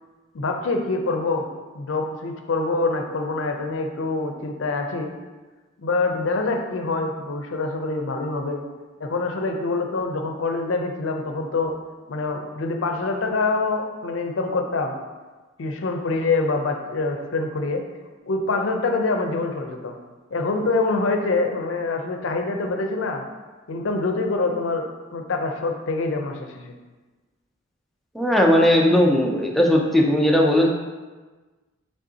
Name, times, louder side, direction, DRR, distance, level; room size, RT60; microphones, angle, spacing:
voice 1, 0.3-1.4 1.7-5.1 5.8-8.6 9.0-11.8 12.1-15.0 15.6-17.8 18.3-19.9 20.3-23.2 23.7-26.7, left 3 dB, 75° left, 4 dB, 0.5 m, -25 dB
voice 2, 28.1-30.7, left 1 dB, ahead, -1 dB, 0.5 m, -18 dB
5.1 x 3.6 x 2.8 m, 1.3 s
head